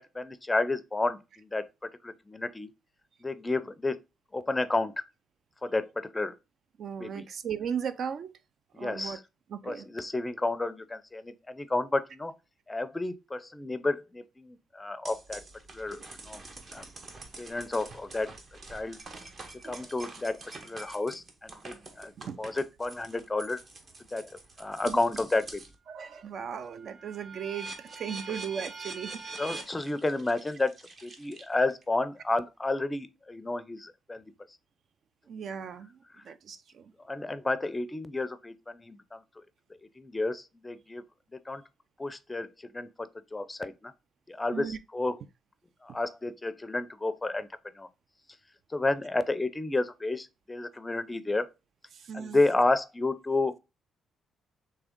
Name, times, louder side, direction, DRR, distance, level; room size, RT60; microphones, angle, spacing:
voice 1, 0.0-1.6 2.0-2.7 3.2-4.0 4.3-4.9 5.6-6.3 7.0-7.2 8.7-9.2 9.6-12.3 12.7-15.4 15.7-16.4 16.7-16.8 17.4-18.3 18.7-19.0 19.6-20.4 20.6-22.1 22.4-23.6 24.1-24.3 24.6-25.6 29.4-30.7 31.0-34.2 37.1-39.2 40.0-41.0 41.5-41.6 42.0-43.9 44.3-45.2 45.8-47.5 47.8-47.9 48.7-51.4 52.1-53.6, left 2 dB, 15° left, 0.4 m, -31 dB
voice 2, 6.8-8.3 8.8-9.2 9.5-9.9 19.6-19.8 22.2-22.4 24.9-25.0 25.9-29.4 35.3-36.9 44.5-44.8 51.9-52.4, right 7 dB, 60° right, 0.4 m, -37 dB
sound 1, 15.1-25.8 26.2-31.8, right 3 dB, 45° right, 0.9 m, -45 dB
3.6 x 3.2 x 3.5 m
cardioid pair, 90°, 0 cm